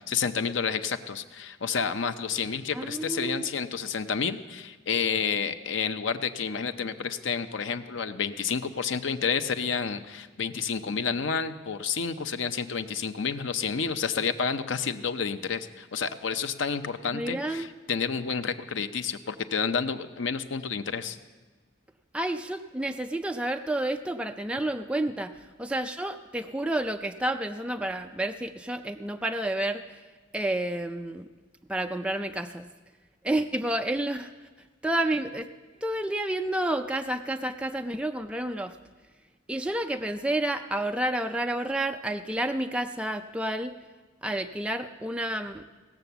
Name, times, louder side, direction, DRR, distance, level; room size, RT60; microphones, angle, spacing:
voice 1, 0.0-21.2, left 6 dB, 75° left, 10 dB, 0.6 m, -30 dB
voice 2, 2.7-3.5 17.1-17.7 22.1-30.0 30.3-31.3 31.7-32.7 33.2-34.3 34.8-35.5 35.8-38.8 39.5-43.7 44.2-45.7, right 1 dB, 5° right, 6 dB, 0.4 m, -30 dB
17.5 x 7.0 x 6.9 m, 1.3 s
head